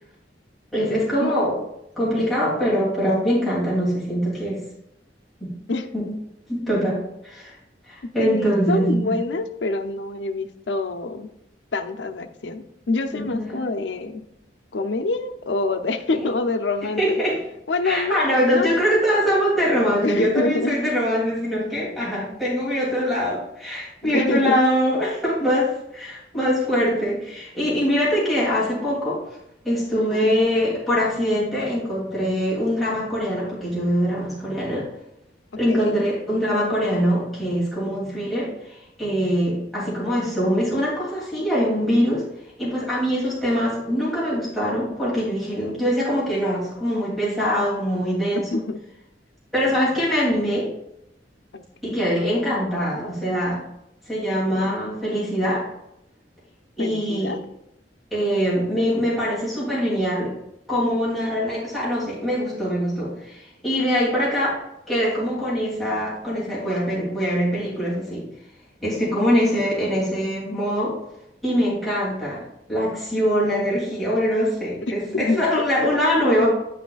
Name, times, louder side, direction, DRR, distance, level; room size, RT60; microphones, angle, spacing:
voice 1, 0.7-1.5 2.0-4.6 5.4-5.5 5.9-6.1 6.5-7.6 7.9-9.2 13.1-13.6 16.1-16.3 17.0-17.4 17.8-29.2 29.6-34.9 35.6-42.2 42.6-48.6 49.5-50.7 51.8-53.6 54.1-55.7 56.8-57.4 58.1-60.3 60.7-64.6 64.9-68.3 68.8-70.9 71.4-72.4 72.7-76.5, equal, ahead, -9 dB, 2.8 m, -23 dB
voice 2, 8.2-11.3 11.7-14.2 14.7-17.2 17.7-18.7 20.0-20.9 24.1-24.7 30.1-30.3 35.7-36.0 48.3-48.8 51.5-52.1 54.6-54.8 56.8-57.4 74.9-75.9, left 3 dB, 75° left, 7 dB, 0.6 m, -26 dB
10.0 x 5.9 x 2.4 m, 0.81 s
head